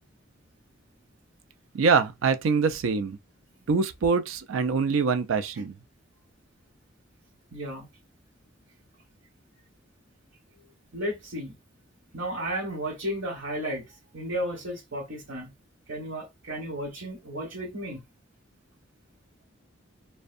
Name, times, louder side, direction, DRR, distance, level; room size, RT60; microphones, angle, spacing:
voice 1, 1.7-3.2 3.7-5.8, right 5 dB, 80° right, 0.4 m, -24 dB
voice 2, 7.5-7.9 10.9-11.6 12.1-13.9 14.1-15.5 15.9-18.0, equal, 65° right, 1.2 m, -33 dB
2.6 x 2.2 x 2.4 m
head